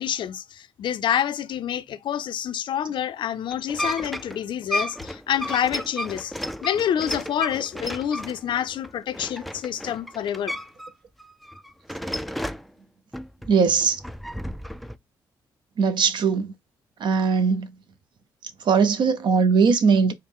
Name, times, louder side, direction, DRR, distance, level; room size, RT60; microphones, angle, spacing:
voice 1, 0.0-10.5, left 9 dB, 60° left, 0.5 m, -27 dB
sound 1, 3.5-10.9 11.2-12.7 13.1-15.0, equal, ahead, 0.3 m, -33 dB
voice 2, 13.5-14.0 15.8-16.5 17.0-17.7 18.6-20.1, right 5 dB, 55° right, 0.6 m, -20 dB
4.5 x 2.0 x 3.6 m
cardioid pair, 75°, 9 cm